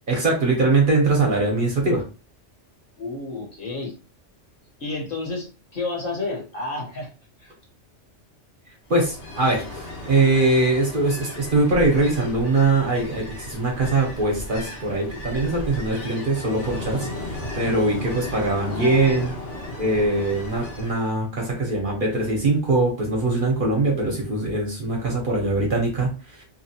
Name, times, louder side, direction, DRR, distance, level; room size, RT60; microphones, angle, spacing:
voice 1, 0.1-2.0 8.9-19.3 19.8-26.4, right 2 dB, 50° right, -1 dB, 1.0 m, -22 dB
voice 2, 3.0-3.9 4.8-7.1 7.4-7.5 18.7-19.7, left 2 dB, 50° left, -1 dB, 1.0 m, -31 dB
Ocean, 8.9-21.1, left 1 dB, 75° left, 1.3 m, -35 dB
2.8 x 2.3 x 2.7 m, 0.33 s
omnidirectional pair, 1.3 m